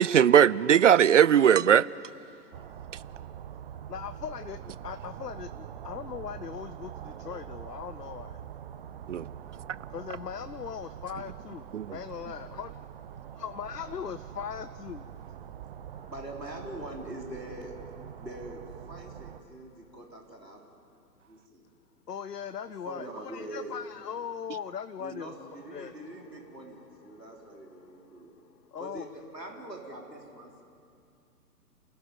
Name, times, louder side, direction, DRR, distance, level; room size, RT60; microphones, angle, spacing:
voice 1, 0.0-1.9 9.1-9.3 11.7-12.0, right 9 dB, 50° right, 20 dB, 0.5 m, -19 dB
sound 1, 2.5-19.4, right 9 dB, 35° right, 0.9 m, -44 dB
voice 2, 3.9-8.4 9.9-11.7 11.9-12.7 13.4-15.1 15.9-16.1 22.1-25.3 25.7-26.5 27.0-27.4 27.7-28.3 28.7-29.1, left 7 dB, 75° left, 12 dB, 0.8 m, -39 dB
voice 3, 16.1-17.7 18.2-20.6 21.3-21.6 22.9-23.8 25.0-28.3 28.8-30.6, right 1 dB, 90° right, 0 dB, 4.3 m, -43 dB
29.0 x 14.0 x 9.3 m, 2.4 s
figure-of-eight pair, 120°, 48 cm